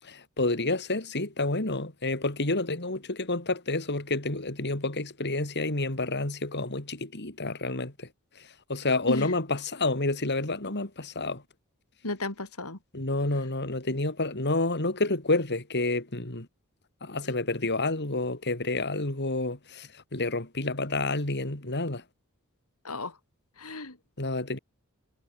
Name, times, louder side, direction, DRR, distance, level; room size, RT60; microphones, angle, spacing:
voice 1, 0.0-8.1 8.4-11.4 12.9-16.5 17.0-22.0 24.2-24.6, left 2 dB, 50° left, 3.8 m, -29 dB
voice 2, 12.0-12.8 22.8-23.2 23.6-24.0, left 2 dB, 75° left, 4.5 m, -34 dB
head